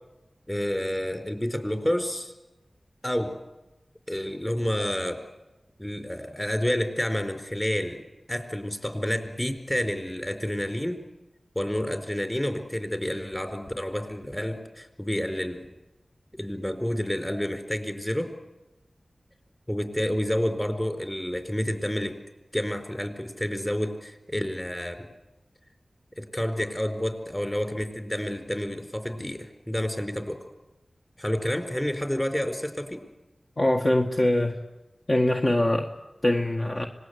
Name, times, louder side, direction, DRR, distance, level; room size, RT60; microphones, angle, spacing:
voice 1, 0.5-2.3 3.0-3.4 4.1-5.2 5.8-8.0 8.3-11.0 11.5-15.7 16.4-18.3 19.7-22.2 22.5-25.1 26.2-30.4 31.2-33.0, equal, 15° left, 7 dB, 4.5 m, -29 dB
voice 2, 33.6-34.6 35.1-35.9 36.2-36.9, left 1 dB, 45° left, 1 dB, 1.8 m, -23 dB
26.0 x 20.0 x 8.2 m, 1.0 s
cardioid pair, 40°, 0 cm